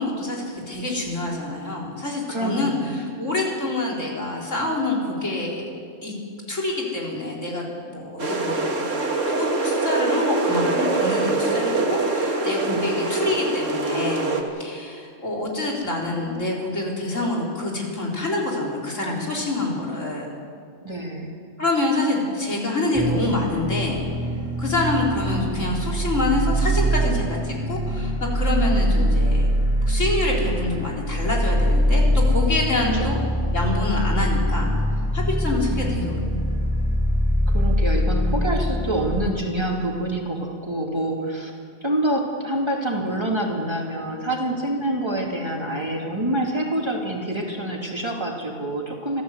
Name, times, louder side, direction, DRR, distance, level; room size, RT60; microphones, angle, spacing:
voice 1, 0.0-5.7 6.0-6.1 6.5-8.6 9.3-20.3 21.6-24.0 24.6-29.5 29.8-33.2 33.5-34.7 35.1-36.2, left 2 dB, 90° left, -2 dB, 4.4 m, -26 dB
voice 2, 2.3-2.9 12.7-12.9 20.8-21.3 32.9-33.1 35.7-36.3 37.5-41.5 41.8-49.2, right 1 dB, 20° right, 0 dB, 2.7 m, -26 dB
sound 1, 8.2-14.4, right 3 dB, 80° right, 2.3 m, -24 dB
sound 2, 22.9-39.3, equal, 5° right, 2.7 m, -23 dB
25.0 x 14.5 x 8.2 m, 2.2 s
omnidirectional pair, 1.3 m